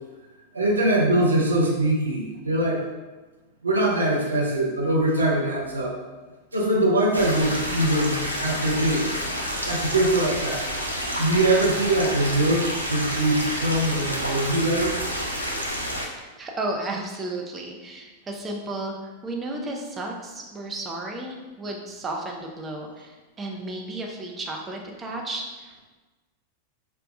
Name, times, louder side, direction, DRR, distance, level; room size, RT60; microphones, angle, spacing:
voice 1, 0.5-2.8 3.6-6.0 6.5-9.1 9.7-10.6 11.2-15.0, right 1 dB, 75° right, -2 dB, 0.6 m, -22 dB
sound 1, 7.1-16.1, equal, 85° left, 0.5 m, -29 dB
voice 2, 16.4-25.8, right 2 dB, 20° right, 0 dB, 0.6 m, -33 dB
5.2 x 2.2 x 2.5 m, 1.2 s
figure-of-eight pair, 90°, 0 cm